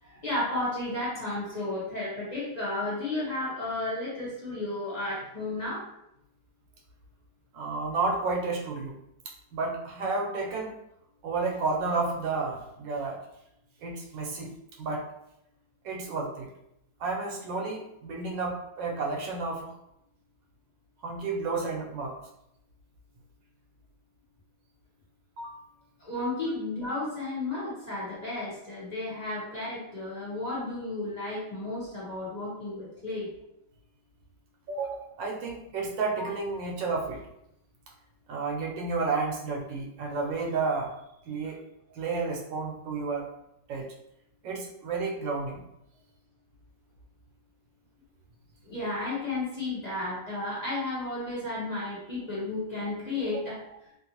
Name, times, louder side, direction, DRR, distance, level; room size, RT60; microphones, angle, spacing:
voice 1, 0.0-5.9 26.0-33.3 41.4-41.5 48.6-53.6, left 2 dB, 35° left, -8 dB, 0.7 m, -33 dB
voice 2, 7.5-8.9 9.5-10.7 11.2-13.2 13.8-14.5 14.8-15.0 15.8-16.5 17.0-19.7 21.0-22.1 25.4-25.6 34.7-37.2 38.3-40.9 41.2-41.6 41.9-43.3 43.7-43.9 44.4-45.6 53.3-53.4, right 4 dB, 85° right, -1 dB, 1.4 m, -31 dB
3.2 x 2.6 x 2.8 m, 0.81 s
omnidirectional pair, 2.0 m